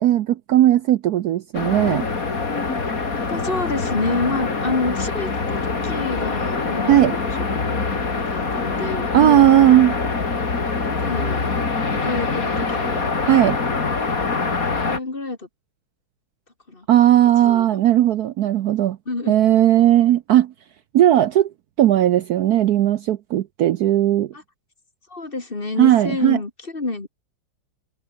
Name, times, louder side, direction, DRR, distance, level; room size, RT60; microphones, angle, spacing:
voice 1, 0.0-2.1 6.9-7.1 9.1-10.0 13.2-13.6 16.9-19.0 19.3-20.5 20.9-21.5 21.8-24.3 25.8-26.4, right 12 dB, 70° right, 0.9 m, -16 dB
sound 1, 1.5-15.0, left 4 dB, 45° left, 3.2 m, -24 dB
voice 2, 3.3-7.3 7.7-7.9 8.3-9.5 10.6-11.5 11.9-13.1 14.6-15.5 16.7-16.9 17.4-17.7 19.1-19.4 24.3-24.4 25.1-27.1, left 3 dB, 25° left, 2.7 m, -28 dB
omnidirectional pair, 2.2 m